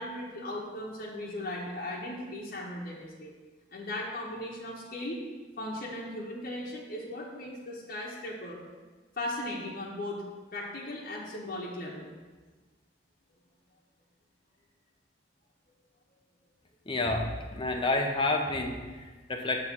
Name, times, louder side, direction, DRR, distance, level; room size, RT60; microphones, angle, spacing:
voice 1, 0.0-3.3 3.7-5.2 5.6-8.6 9.2-10.2 10.5-12.1, left 1 dB, 50° left, -5 dB, 1.0 m, -37 dB
voice 2, 16.9-19.6, left 2 dB, 25° left, 2 dB, 0.7 m, -29 dB
7.1 x 3.1 x 6.1 m, 1.3 s
head